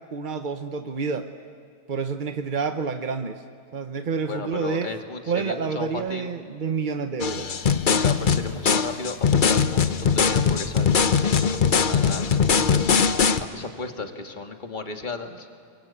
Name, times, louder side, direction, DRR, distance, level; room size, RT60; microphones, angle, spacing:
voice 1, 0.1-1.3 1.9-3.4 3.7-4.9 5.3-7.5, right 5 dB, 50° right, 7 dB, 0.6 m, -28 dB
voice 2, 4.2-6.3 8.0-12.9 13.4-15.5, left 3 dB, 25° left, 5 dB, 1.6 m, -35 dB
sound 1, 7.2-13.4, left 6 dB, 55° left, 0.5 m, -21 dB
27.5 x 23.5 x 8.5 m, 2.2 s
omnidirectional pair, 2.0 m